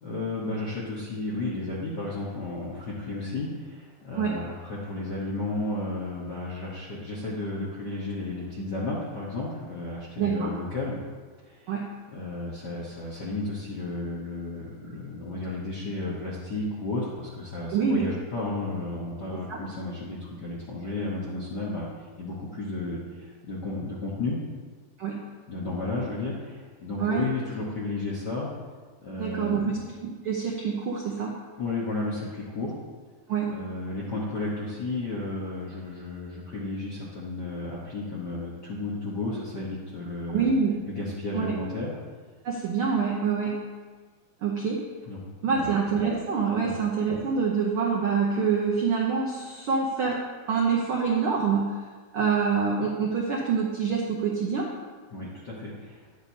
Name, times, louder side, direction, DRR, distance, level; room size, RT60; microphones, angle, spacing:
voice 1, 0.0-11.0 11.4-11.7 12.1-24.4 25.5-28.5 29.0-29.7 31.6-32.8 33.5-40.5 40.9-41.9 45.1-45.7 46.6-46.7 55.1-56.1, left 2 dB, 60° left, -6 dB, 1.1 m, -33 dB
voice 2, 10.2-10.5 11.7-11.9 17.7-18.1 19.5-19.6 25.0-25.2 27.0-27.2 29.2-31.4 33.3-33.6 40.3-40.7 41.3-41.5 42.4-43.6 44.4-44.8 45.4-50.2 50.5-51.8 52.1-54.7, right 5 dB, 75° right, -2 dB, 1.2 m, -26 dB
10.5 x 8.8 x 2.8 m, 1.5 s
omnidirectional pair, 3.6 m